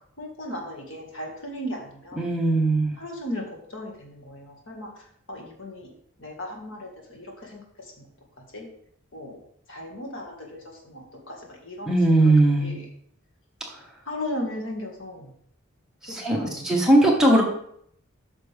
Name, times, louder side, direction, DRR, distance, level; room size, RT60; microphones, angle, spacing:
voice 1, 0.2-2.3 3.0-3.4 3.7-4.9 5.3-5.9 6.2-7.6 8.0-8.1 8.5-8.7 9.1-9.4 9.7-11.9 12.2-12.9 14.1-15.3 16.3-17.0, left 1 dB, 65° left, 0 dB, 1.9 m, -36 dB
voice 2, 2.2-2.9 11.9-12.8 16.1-16.4 16.6-17.4, right 1 dB, 5° right, -2 dB, 1.5 m, -19 dB
8.9 x 6.0 x 3.5 m, 0.67 s
head